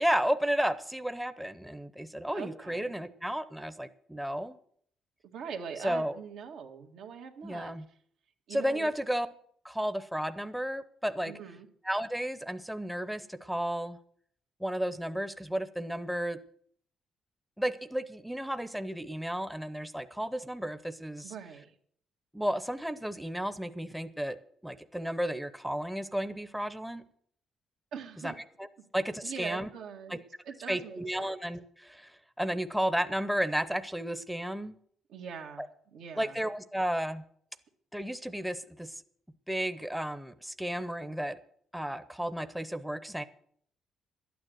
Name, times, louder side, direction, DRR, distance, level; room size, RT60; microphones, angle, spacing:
voice 1, 0.0-4.6 5.8-6.2 7.4-7.8 8.5-9.3 9.6-11.3 11.8-14.0 14.6-16.4 17.6-21.3 22.3-24.4 24.6-27.0 28.2-28.3 28.6-28.7 28.9-29.7 30.1-30.2 30.7-32.1 32.4-34.8 35.6-35.7 36.2-37.2 37.9-38.9 39.5-41.4 41.7-43.2, equal, 5° right, 11 dB, 0.8 m, -33 dB
voice 2, 2.3-3.0 5.2-7.7 8.5-8.9 11.2-11.7 21.2-21.7 27.9-28.4 29.2-30.2 30.5-31.3 35.1-35.6 35.9-36.4, right 6 dB, 85° right, 2 dB, 2.0 m, -42 dB
11.5 x 9.3 x 7.8 m, 0.63 s
cardioid pair, 90°, 0 cm